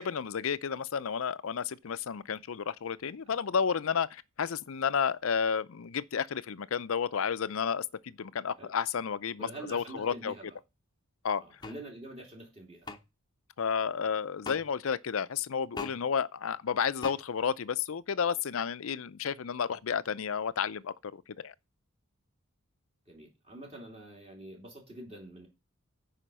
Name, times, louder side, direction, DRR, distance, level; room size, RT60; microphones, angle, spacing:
voice 1, 0.0-10.3 11.2-11.4 13.6-21.5, left 6 dB, 65° left, 0.5 m, -31 dB
voice 2, 9.4-10.6 11.4-12.9 19.7-19.8 23.1-25.5, right 2 dB, 30° right, 2.8 m, -46 dB
sound 1, 11.6-11.8 12.8-13.0 14.4-14.6 15.7-16.0 17.0-17.2, left 4 dB, 20° left, 0.7 m, -39 dB
9.9 x 5.1 x 6.2 m
head